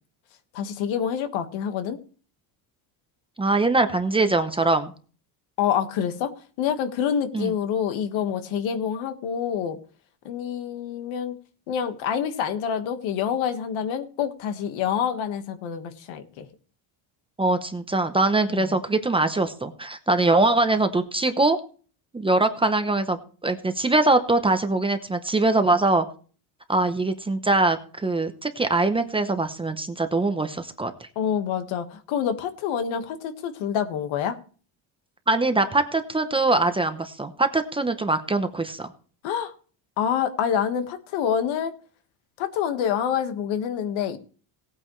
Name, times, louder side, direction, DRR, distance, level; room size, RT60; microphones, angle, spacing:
voice 1, 0.5-2.0 5.6-6.3 6.6-9.8 10.2-11.3 11.7-16.5 18.5-18.8 31.1-34.4 39.2-39.5 40.0-41.7 42.4-44.2, left 8 dB, 75° left, 8 dB, 1.7 m, -27 dB
voice 2, 3.4-4.9 7.3-7.5 17.4-21.6 22.1-26.1 26.7-31.1 35.3-38.9, right 2 dB, 10° right, 8 dB, 0.8 m, -22 dB
18.0 x 8.9 x 3.2 m, 0.40 s
cardioid pair, 155°, 47 cm